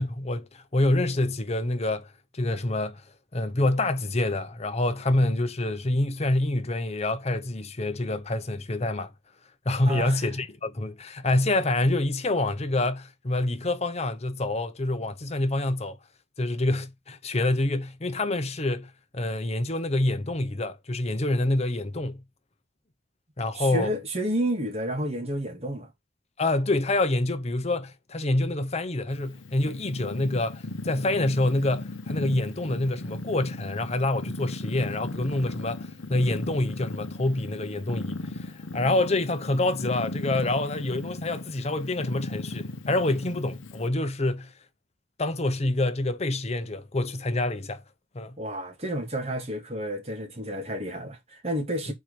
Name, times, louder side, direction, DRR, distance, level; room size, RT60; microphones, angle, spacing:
voice 1, 0.0-3.0 3.3-9.1 9.6-16.0 16.4-22.2 23.4-23.9 26.4-44.5 45.2-47.8 48.1-48.4 51.9-52.0, left 2 dB, 30° left, 0.8 m, -27 dB
voice 2, 9.9-10.2 23.5-25.9 48.4-51.9, right 1 dB, 30° right, 1.8 m, -30 dB
Purr, 29.1-43.9, left 2 dB, 75° left, 0.8 m, -37 dB
4.6 x 4.5 x 5.1 m
head